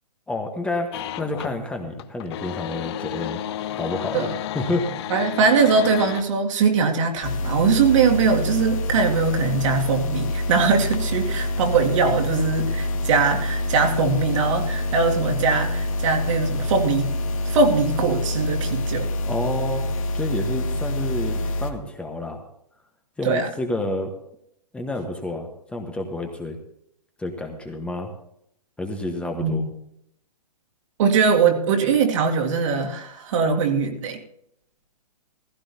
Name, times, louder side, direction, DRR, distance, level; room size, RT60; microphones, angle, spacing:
voice 1, 0.3-3.4 3.7-4.3 4.5-4.9 19.3-19.8 20.1-22.4 23.2-24.1 24.7-26.6 27.2-28.1 28.8-29.6, left 2 dB, 5° left, 3 dB, 1.2 m, -29 dB
sound 1, 0.9-1.6 1.9-6.2, left 11 dB, 40° left, 0.7 m, -31 dB
voice 2, 5.1-17.1 17.5-19.1 23.2-23.5 29.3-29.7 31.0-34.2, right 5 dB, 50° right, 2 dB, 2.2 m, -21 dB
sound 2, 7.2-21.7, left 1 dB, 55° left, 1.8 m, -26 dB
16.5 x 15.5 x 2.8 m, 0.73 s
figure-of-eight pair, 125°, 20 cm